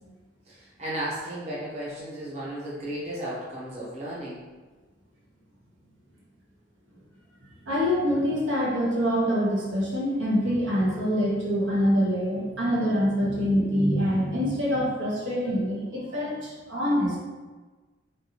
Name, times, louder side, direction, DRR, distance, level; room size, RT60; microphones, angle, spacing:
voice 1, 0.5-4.4, right 1 dB, 35° right, -8 dB, 0.9 m, -34 dB
voice 2, 7.6-17.2, equal, 75° right, -6 dB, 1.1 m, -25 dB
3.8 x 3.3 x 2.9 m, 1.3 s
head